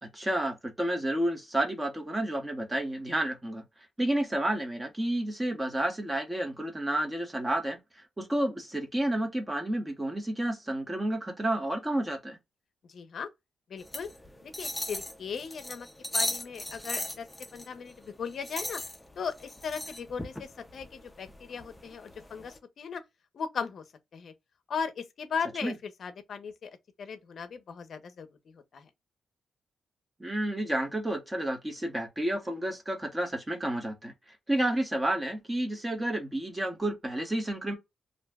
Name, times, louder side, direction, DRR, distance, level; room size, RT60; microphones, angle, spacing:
voice 1, 0.0-3.6 4.0-7.8 8.2-12.4 25.6-25.7 30.2-34.1 34.5-37.7, right 1 dB, 15° right, 0.8 m, -30 dB
voice 2, 12.9-13.3 13.7-14.1 14.4-15.9 16.1-17.3 17.5-18.8 19.2-23.0 23.3-23.8 24.1-24.3 24.7-26.7 27.0-28.3 28.5-28.9, left 6 dB, 55° left, 0.5 m, -37 dB
sound 1, 13.8-22.6, left 1 dB, 10° left, 0.4 m, -38 dB
2.6 x 2.1 x 3.3 m
wide cardioid pair, 140°, 0 cm